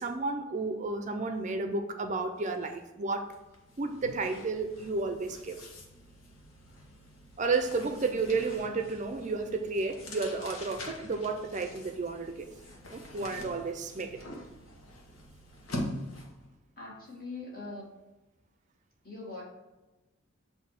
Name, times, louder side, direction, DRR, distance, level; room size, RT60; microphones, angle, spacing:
voice 1, 0.0-3.3 3.8-5.6 7.4-12.5 12.9-14.2, right 3 dB, 35° right, 7 dB, 0.5 m, -32 dB
sound 1, 2.5-2.7 3.0-16.5, left 1 dB, 85° left, 1.1 m, -44 dB
voice 2, 16.8-17.9 19.0-19.4, left 3 dB, 45° left, -4 dB, 2.0 m, -42 dB
8.0 x 2.7 x 5.8 m, 1.1 s
head